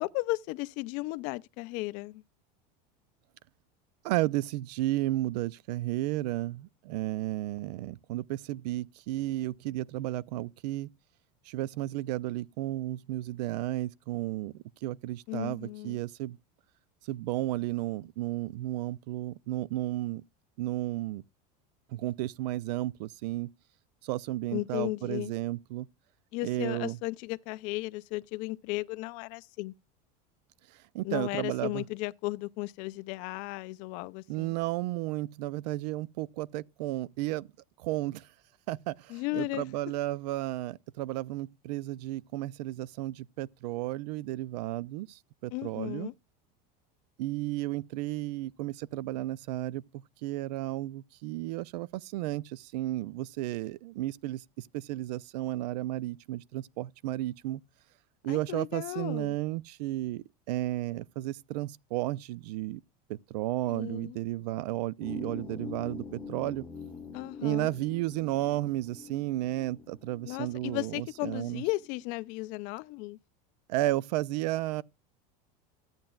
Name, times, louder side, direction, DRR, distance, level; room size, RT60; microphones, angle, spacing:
voice 1, 0.0-2.2 15.3-16.0 24.5-25.3 26.3-29.7 31.0-34.6 39.1-39.7 45.5-46.1 58.3-59.4 63.7-64.2 67.1-67.7 70.2-73.2, left 21 dB, 40° left, 0.4 m, -35 dB
voice 2, 4.0-10.9 11.5-14.5 14.8-16.4 17.1-20.2 20.6-21.2 21.9-23.5 24.0-25.9 26.4-27.0 30.9-31.8 34.3-37.5 37.8-38.2 38.7-46.1 47.2-49.8 50.2-57.6 58.2-62.8 63.1-66.6 67.4-71.6 73.7-74.8, right 16 dB, 80° right, 0.5 m, -33 dB
sound 1, 65.0-72.0, left 5 dB, 5° left, 0.9 m, -45 dB
14.0 x 8.8 x 2.3 m
cardioid pair, 175°, 21 cm